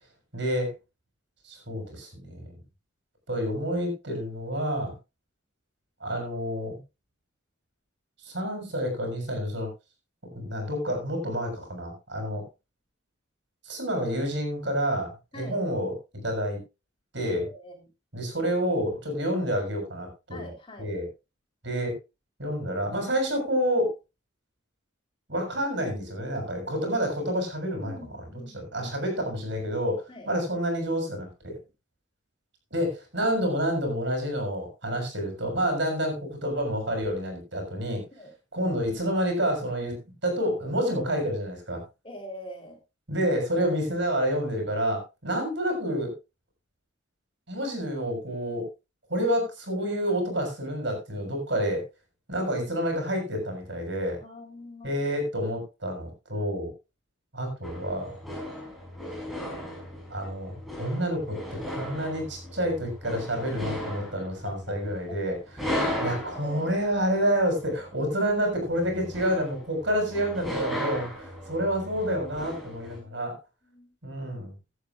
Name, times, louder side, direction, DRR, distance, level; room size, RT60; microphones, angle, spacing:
voice 1, 0.3-0.7 1.4-2.6 3.3-4.9 6.0-6.8 8.2-9.7 10.3-12.4 13.6-15.9 16.2-16.6 17.1-17.4 18.1-20.5 20.8-21.1 21.6-21.9 22.4-23.9 25.3-27.9 28.5-31.6 32.7-38.0 38.5-40.0 40.2-41.8 43.1-46.1 47.5-48.7 49.1-51.8 52.3-54.2 54.8-56.7 57.3-58.1 60.1-61.4 61.7-65.4 65.6-65.7 66.0-73.3 74.0-74.5, equal, 65° right, 3 dB, 7.0 m, -28 dB
voice 2, 17.2-17.9 20.3-20.9 27.8-28.9 30.1-30.3 38.1-38.3 42.0-42.8 54.2-55.2 64.1-64.7 65.1-65.4 66.3-66.7 72.9-73.4 73.6-73.9, equal, 25° left, 0 dB, 3.8 m, -44 dB
sound 1, 57.6-73.0, equal, ahead, 5.5 m, -37 dB
17.0 x 11.0 x 2.5 m, 0.27 s
head